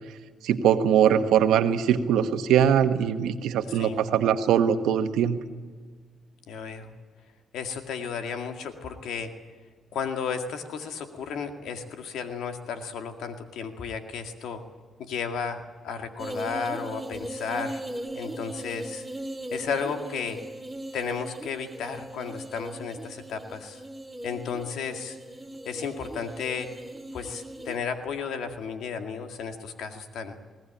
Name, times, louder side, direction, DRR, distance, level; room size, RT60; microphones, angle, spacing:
voice 1, 0.4-5.4, right 9 dB, 85° right, 8 dB, 1.3 m, -22 dB
voice 2, 6.5-6.9 7.5-9.3 9.9-14.6 15.0-17.8 18.1-19.0 19.5-20.4 20.9-23.8 24.2-25.2 25.7-26.7 27.1-30.4, left 6 dB, 80° left, 6 dB, 2.1 m, -33 dB
sound 1, 16.2-27.8, right 1 dB, 10° right, 2.5 m, -38 dB
20.5 x 17.5 x 8.9 m, 1.5 s
supercardioid pair, 65°, 0 cm